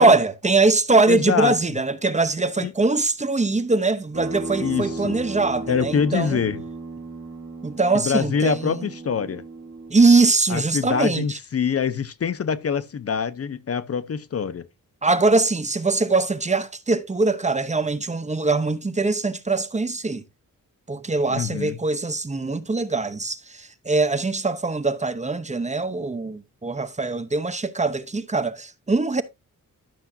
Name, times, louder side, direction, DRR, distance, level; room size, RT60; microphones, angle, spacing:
voice 1, 0.0-6.4 7.6-8.8 9.9-11.4 15.0-20.2 20.9-29.2, right 3 dB, 20° right, 0.8 m, -22 dB
voice 2, 1.1-1.5 2.6-2.7 4.6-5.2 5.7-6.6 7.9-9.4 10.5-14.7 21.3-21.8, left 6 dB, 45° left, 0.7 m, -25 dB
sound 1, 4.1-9.9, right 3 dB, 35° right, 2.5 m, -35 dB
12.0 x 7.0 x 2.7 m
wide cardioid pair, 120°, 33 cm